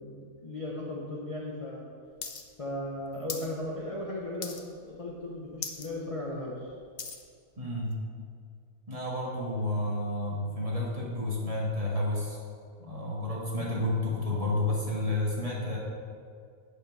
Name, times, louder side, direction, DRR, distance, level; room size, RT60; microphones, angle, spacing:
voice 1, 0.0-1.9 2.6-6.7 10.3-10.4, left 1 dB, 30° left, -4 dB, 0.8 m, -37 dB
sound 1, 2.2-2.4 2.7-3.5 3.9-4.1 4.4-4.9 5.2-5.3 5.5-5.9 6.3-7.2 7.9-8.0, left 5 dB, 55° left, 0.5 m, -39 dB
voice 2, 7.6-8.0 8.9-12.4 12.8-15.8, left 1 dB, 25° right, -5 dB, 1.7 m, -30 dB
8.5 x 5.0 x 5.6 m, 2.2 s
omnidirectional pair, 1.5 m